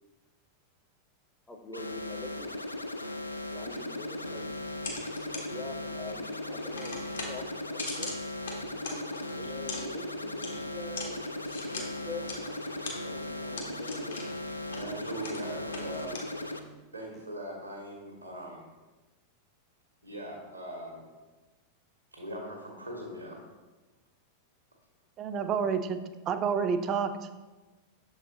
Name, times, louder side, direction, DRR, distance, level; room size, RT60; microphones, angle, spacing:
voice 1, 1.5-2.5 3.5-4.5 5.3-8.1 9.3-11.2 11.7-12.3 13.0-14.3 15.8-15.9, left 3 dB, 15° left, 2 dB, 0.6 m, -44 dB
sound 1, 1.7-16.6, left 2 dB, 85° left, 0.4 m, -37 dB
sound 2, 3.6-16.7, left 2 dB, 70° left, 1.1 m, -43 dB
voice 2, 14.7-16.4 16.9-18.7 20.0-21.1 22.1-23.4, right 1 dB, 80° right, -2 dB, 1.2 m, -40 dB
voice 3, 25.2-27.1, right 6 dB, 35° right, 9 dB, 0.4 m, -29 dB
6.8 x 4.2 x 3.7 m, 1.2 s
figure-of-eight pair, 90°, 0 cm